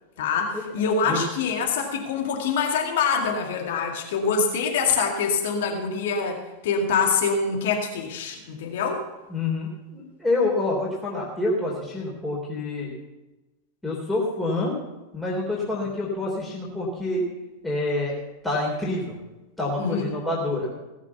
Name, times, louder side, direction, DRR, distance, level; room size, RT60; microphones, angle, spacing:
voice 1, 0.2-9.0 19.8-20.1, left 5 dB, 55° left, 1 dB, 2.0 m, -25 dB
voice 2, 0.8-1.2 9.3-12.9 13.8-14.7 15.1-17.2 17.6-18.1 18.4-19.2 19.6-20.7, left 2 dB, 5° left, -5 dB, 3.3 m, -27 dB
17.5 x 7.5 x 6.9 m, 1.1 s
figure-of-eight pair, 90°, 0 cm